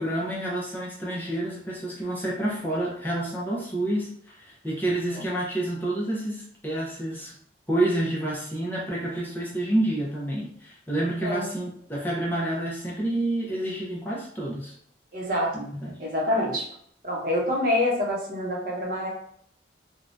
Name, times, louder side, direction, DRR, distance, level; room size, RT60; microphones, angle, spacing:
voice 1, 0.0-7.3 7.7-14.7 15.5-16.0, right 1 dB, 10° left, -5 dB, 0.6 m, -29 dB
voice 2, 4.9-5.2 11.2-11.5 15.1-15.7 16.0-16.6 17.0-19.1, left 1 dB, 45° right, -3 dB, 0.8 m, -27 dB
3.5 x 2.2 x 2.6 m, 0.66 s
head